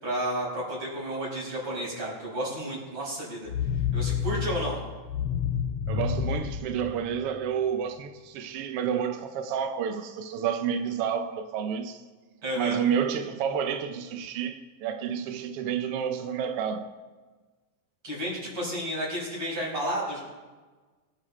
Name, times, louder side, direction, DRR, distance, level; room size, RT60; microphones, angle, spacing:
voice 1, 0.0-3.5 3.9-4.8 12.4-12.8 18.0-20.2, right 1 dB, 45° right, 6.3 m, -31 dB
sound 1, 3.5-7.5, left 8 dB, 70° left, 1.4 m, -30 dB
voice 2, 5.9-12.0 12.6-17.0, right 8 dB, 75° right, 1.3 m, -30 dB
24.0 x 11.5 x 3.2 m
omnidirectional pair, 3.6 m